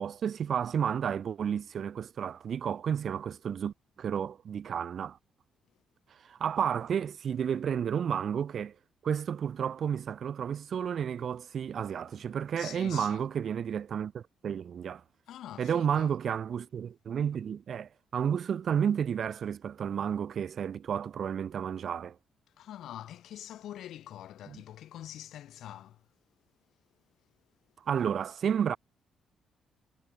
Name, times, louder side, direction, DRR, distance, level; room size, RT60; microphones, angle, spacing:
voice 1, 0.0-5.2 6.1-8.7 9.0-15.0 15.6-22.2 24.5-24.6 27.9-28.8, right 8 dB, 55° right, 0.9 m, -31 dB
voice 2, 12.6-13.2 15.3-16.1 22.6-26.0, left 12 dB, 75° left, 2.2 m, -44 dB
cardioid pair, 90°, 0 cm